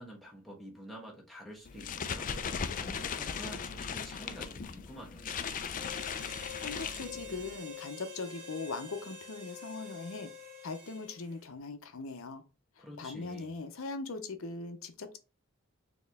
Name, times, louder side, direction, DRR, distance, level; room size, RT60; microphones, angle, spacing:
voice 1, 0.0-2.3 2.7-5.3 12.8-13.5, equal, ahead, 1.2 m, -48 dB
sound 1, 1.7-7.6, left 6 dB, 40° left, 0.4 m, -38 dB
Harmonica, 5.7-11.4, left 4 dB, 35° right, 1.6 m, -47 dB
voice 2, 6.6-10.3 10.6-12.4 12.8-15.2, left 3 dB, 65° left, 0.7 m, -40 dB
4.4 x 2.9 x 3.5 m
head